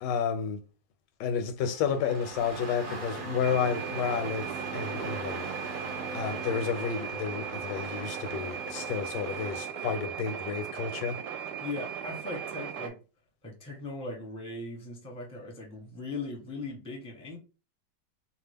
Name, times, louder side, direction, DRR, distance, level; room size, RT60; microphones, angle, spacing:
voice 1, 0.0-0.6 1.2-5.5 5.8-11.2, left 7 dB, 80° left, 1.2 m, -31 dB
Engine starting, 1.6-9.7, right 3 dB, 50° right, 0.6 m, -40 dB
sound 1, 3.4-12.9, right 8 dB, 75° right, 1.1 m, -38 dB
voice 2, 11.6-13.0 13.4-17.4, left 2 dB, 5° left, 0.7 m, -39 dB
2.8 x 2.4 x 3.4 m
omnidirectional pair, 1.9 m